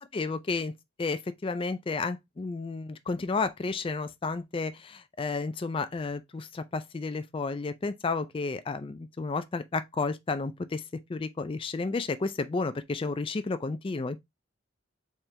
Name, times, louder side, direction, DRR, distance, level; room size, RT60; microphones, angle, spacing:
voice 1, 0.0-10.8 11.1-14.2, left 3 dB, 25° left, 0.4 m, -32 dB
4.3 x 3.6 x 3.2 m
head